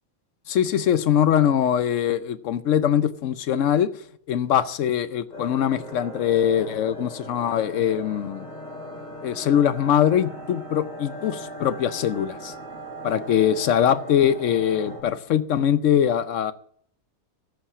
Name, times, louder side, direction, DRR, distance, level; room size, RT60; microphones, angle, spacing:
voice 1, 0.5-3.9 4.3-8.5 9.2-12.5 13.0-16.5, left 9 dB, 65° left, 0.9 m, -22 dB
sound 1, 5.3-15.0, equal, 30° left, 3.0 m, -39 dB
14.0 x 5.7 x 8.4 m
omnidirectional pair, 1.5 m